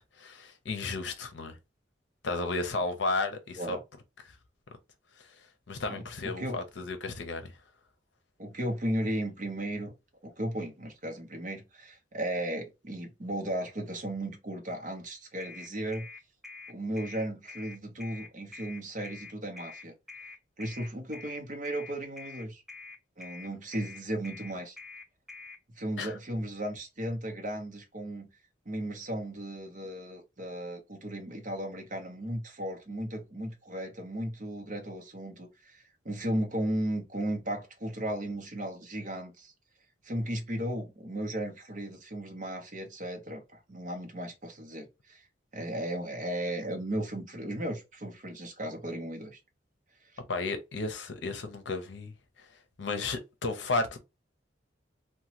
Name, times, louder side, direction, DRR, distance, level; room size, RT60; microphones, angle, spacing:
voice 1, 0.0-1.6 2.2-3.8 5.2-5.4 5.7-7.5 26.0-26.2 50.3-52.1 52.4-52.5 52.8-54.0, left 3 dB, 70° left, 0.6 m, -33 dB
voice 2, 5.9-6.6 8.4-9.9 10.2-16.1 16.7-19.9 20.6-22.6 23.2-24.8 25.7-28.3 28.7-39.5 40.0-45.2 45.5-49.4, right 1 dB, 45° right, 0.8 m, -35 dB
sound 1, 15.4-25.6, left 4 dB, ahead, 0.3 m, -46 dB
3.0 x 2.2 x 2.8 m
head